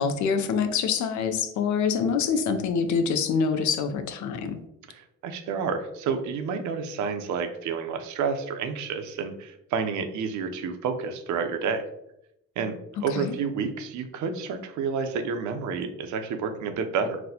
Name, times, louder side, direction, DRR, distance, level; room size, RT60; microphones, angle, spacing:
voice 1, 0.0-4.6 13.1-13.4, left 6 dB, 70° left, 8 dB, 0.5 m, -25 dB
voice 2, 4.9-11.8 12.6-12.7 13.0-17.2, right 5 dB, 75° right, 7 dB, 0.5 m, -30 dB
3.9 x 2.1 x 2.7 m, 0.82 s
cardioid pair, 90°, 30 cm